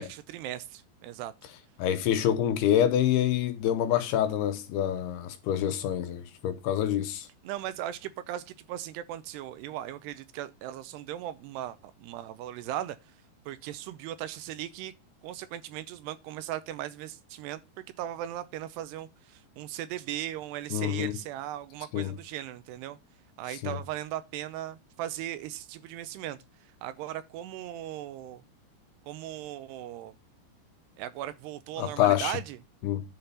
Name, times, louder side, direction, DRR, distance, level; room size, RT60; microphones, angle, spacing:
voice 1, 0.0-1.3 7.4-13.2 13.5-14.9 15.2-17.6 18.0-23.0 23.4-28.4 29.0-30.2 31.0-32.6, right 12 dB, 80° right, 2.7 m, -38 dB
voice 2, 1.8-7.3 20.7-21.1 21.9-22.1 23.6-23.7 31.8-32.3 32.8-33.0, left 11 dB, 75° left, 2.7 m, -26 dB
10.5 x 5.1 x 5.5 m
omnidirectional pair, 5.0 m